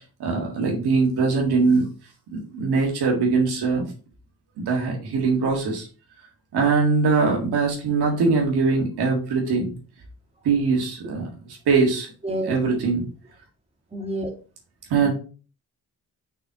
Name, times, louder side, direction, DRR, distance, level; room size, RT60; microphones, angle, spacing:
voice 1, 0.2-1.8 2.3-3.9 4.6-5.9 6.5-9.7 10.4-11.3 11.7-12.1 12.5-13.1 14.9-15.1, right 4 dB, 90° right, 1.8 m, -21 dB
voice 2, 12.2-12.6 13.9-14.3 15.0-15.1, right 1 dB, 15° right, 2.4 m, -28 dB
5.5 x 4.1 x 4.1 m
cardioid pair, 60°, 38 cm